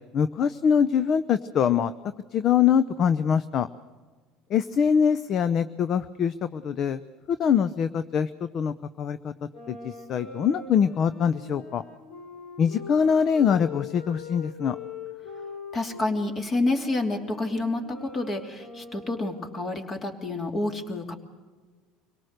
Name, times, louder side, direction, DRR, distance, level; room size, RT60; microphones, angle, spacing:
voice 1, 0.1-1.9 2.3-3.7 4.5-7.0 7.4-9.3 9.7-11.8 12.6-14.8, left 7 dB, 50° left, 13 dB, 0.7 m, -23 dB
sound 1, 9.5-16.2 16.7-19.6, left 5 dB, 80° left, 4.3 m, -42 dB
voice 2, 15.7-21.2, left 2 dB, 30° left, 6 dB, 2.8 m, -28 dB
25.0 x 18.0 x 6.6 m, 1.4 s
supercardioid pair, 100°, 0 cm